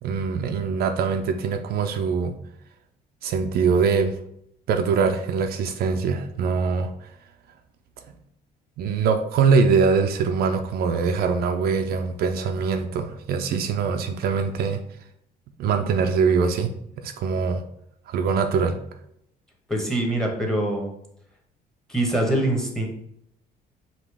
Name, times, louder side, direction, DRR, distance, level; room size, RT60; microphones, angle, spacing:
voice 1, 0.0-2.3 3.2-4.1 4.7-7.1 8.8-14.8 15.6-16.7 17.0-17.6 18.1-18.8, right 5 dB, 65° right, 6 dB, 0.5 m, -23 dB
voice 2, 19.7-20.9 21.9-22.9, right 1 dB, 5° left, 1 dB, 1.1 m, -24 dB
5.1 x 2.9 x 3.4 m, 0.73 s
cardioid pair, 110°, 17 cm